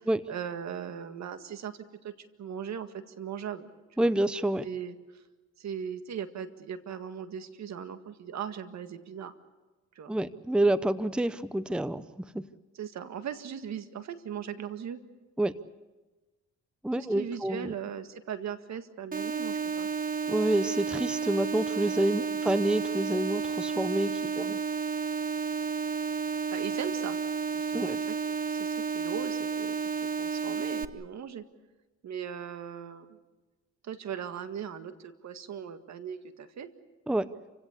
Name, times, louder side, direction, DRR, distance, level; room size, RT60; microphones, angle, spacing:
voice 1, 0.0-2.1 2.4-3.7 4.0-4.1 4.6-5.2 5.6-9.3 10.0-10.1 12.7-15.0 16.9-19.9 22.2-22.3 24.2-24.5 26.5-27.2 27.5-28.2 28.5-31.4 32.0-33.2 33.8-36.7, right 8 dB, 65° right, 9 dB, 1.8 m, -39 dB
voice 2, 4.0-4.7 10.1-12.4 15.4-15.6 16.8-17.7 20.3-24.6 27.7-28.0 37.1-37.3, right 1 dB, 5° right, 15 dB, 0.7 m, -28 dB
sound 1, 19.1-30.9, right 5 dB, 30° right, 1.0 m, -31 dB
29.0 x 16.5 x 8.3 m, 1.2 s
cardioid pair, 90°, 30 cm